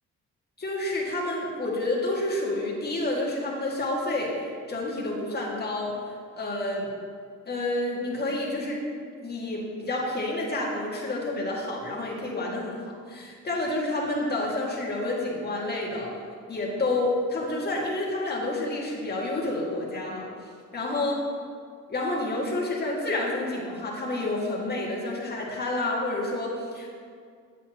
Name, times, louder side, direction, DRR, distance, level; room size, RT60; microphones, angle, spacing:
voice 1, 0.6-6.0 6.4-6.9 7.5-8.8 9.2-12.8 13.1-16.1 16.5-20.3 20.7-21.2 21.9-26.9, left 2 dB, 35° left, -3 dB, 2.0 m, -29 dB
8.3 x 8.1 x 3.0 m, 2.1 s
cardioid pair, 90°, 30 cm